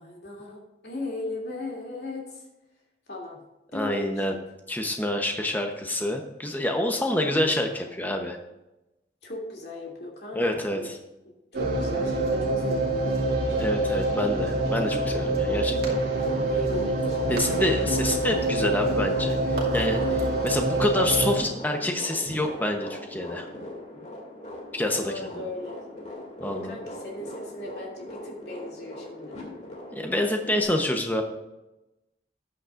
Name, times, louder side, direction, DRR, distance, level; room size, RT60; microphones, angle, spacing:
voice 1, 0.0-2.4 3.1-3.4 3.7-4.4 6.7-7.9 9.2-10.9 11.2-13.8 16.5-18.3 24.9-25.8 26.4-29.4, left 1 dB, 70° left, -2 dB, 2.8 m, -38 dB
voice 2, 3.7-4.3 4.7-8.4 10.3-11.0 13.6-16.0 17.3-23.5 24.7-25.1 26.4-26.8 29.9-31.2, left 1 dB, 10° left, 3 dB, 0.9 m, -27 dB
sound 1, 11.5-21.4, right 2 dB, 60° right, 2.3 m, -26 dB
sound 2, 14.5-30.6, left 1 dB, 40° left, 2.5 m, -40 dB
13.5 x 9.4 x 2.5 m, 0.96 s
head